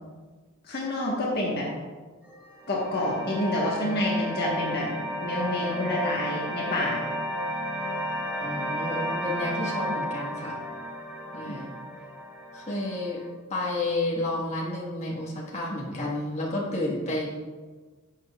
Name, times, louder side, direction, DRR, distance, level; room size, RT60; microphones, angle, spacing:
voice 1, 0.7-1.7 2.7-4.9 5.2-7.0 11.5-11.6, left 1 dB, 50° left, -4 dB, 1.3 m, -28 dB
sound 1, 2.2-13.3, equal, 5° right, 0.7 m, -33 dB
voice 2, 8.4-10.6 11.3-11.7 12.5-13.2 13.5-17.3, left 2 dB, 30° left, -4 dB, 1.5 m, -31 dB
10.5 x 6.7 x 2.4 m, 1.4 s
head